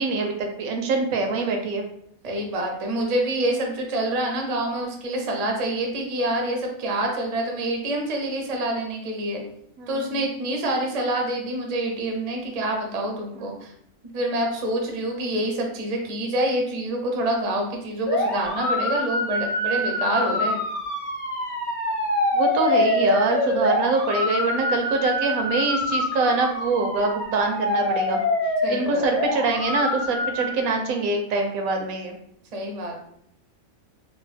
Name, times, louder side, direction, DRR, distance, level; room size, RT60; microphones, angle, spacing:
voice 1, 0.0-1.8 9.8-10.2 13.4-13.5 22.3-28.2 28.7-32.2, right 3 dB, 85° right, 3 dB, 1.0 m, -24 dB
voice 2, 2.2-9.4 9.9-13.7 14.1-20.6 28.6-29.0 32.5-32.9, right 1 dB, 50° right, 1 dB, 0.4 m, -26 dB
sound 1, 18.1-30.5, left 1 dB, 55° left, 1.0 m, -25 dB
2.9 x 2.0 x 3.3 m, 0.72 s
omnidirectional pair, 1.5 m